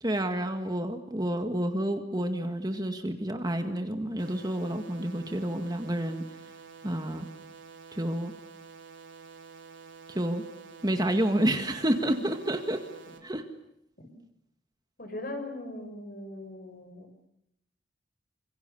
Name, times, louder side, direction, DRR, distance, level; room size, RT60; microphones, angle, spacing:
voice 1, 0.0-6.2 6.8-7.3 7.9-8.3 10.1-10.4 10.8-12.9 13.2-13.5, right 1 dB, 20° right, 6 dB, 1.9 m, -29 dB
sound 1, 4.2-13.2, right 5 dB, 80° right, 4.1 m, -49 dB
voice 2, 15.0-17.3, left 1 dB, 50° left, 6 dB, 6.8 m, -40 dB
28.5 x 26.5 x 7.0 m, 0.79 s
head